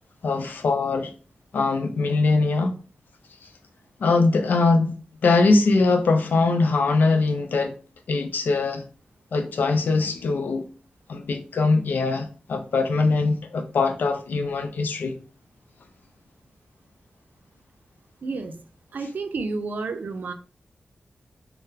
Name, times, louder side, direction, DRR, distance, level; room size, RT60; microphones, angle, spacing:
voice 1, 0.2-1.1 1.5-2.8 4.0-4.9 5.2-7.7 8.1-8.9 9.3-10.7 11.1-15.2, left 3 dB, 85° left, 0.4 m, -22 dB
voice 2, 18.2-18.6 18.9-20.3, right 3 dB, 75° right, 0.4 m, -30 dB
3.8 x 2.1 x 2.7 m
wide cardioid pair, 75°, 3 cm